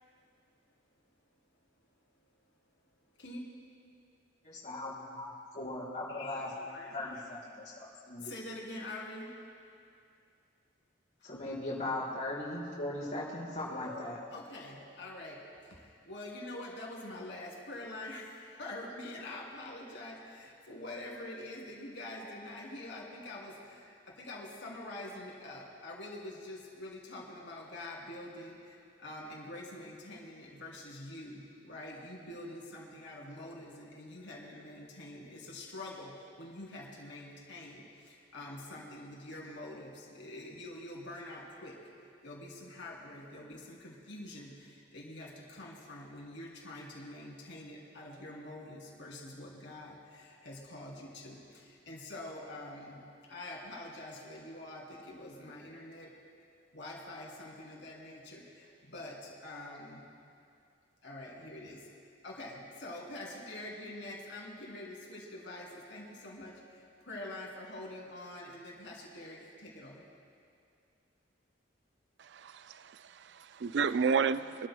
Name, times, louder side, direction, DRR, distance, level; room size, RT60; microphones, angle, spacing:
voice 1, 4.4-6.5 6.9-8.3 11.2-14.2, left 1 dB, 40° left, -6 dB, 4.1 m, -39 dB
voice 2, 6.1-7.2 8.2-9.4 13.6-14.0 14.3-56.1 56.7-60.1 61.0-61.9 62.2-70.1, left 1 dB, 75° left, -3 dB, 3.2 m, -46 dB
voice 3, 72.3-74.7, right 5 dB, 65° right, 13 dB, 0.4 m, -31 dB
26.5 x 13.5 x 2.3 m, 2.4 s
head